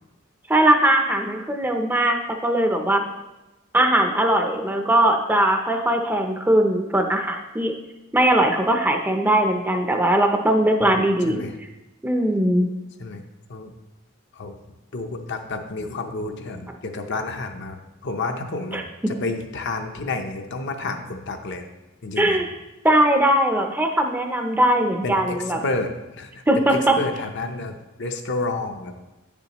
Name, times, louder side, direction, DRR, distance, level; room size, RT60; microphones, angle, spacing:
voice 1, 0.5-2.2 2.4-3.0 3.7-7.7 8.1-11.4 12.0-12.7 18.7-18.8 22.2-22.5 22.8-25.6 26.5-26.9, right 1 dB, 10° right, 4 dB, 0.5 m, -20 dB
voice 2, 10.8-11.5 13.0-13.2 13.5-13.7 14.3-14.6 14.9-21.7 22.0-22.4 25.0-26.4 26.7-28.9, left 3 dB, 55° left, 5 dB, 0.7 m, -30 dB
9.0 x 6.9 x 2.9 m, 1.0 s
head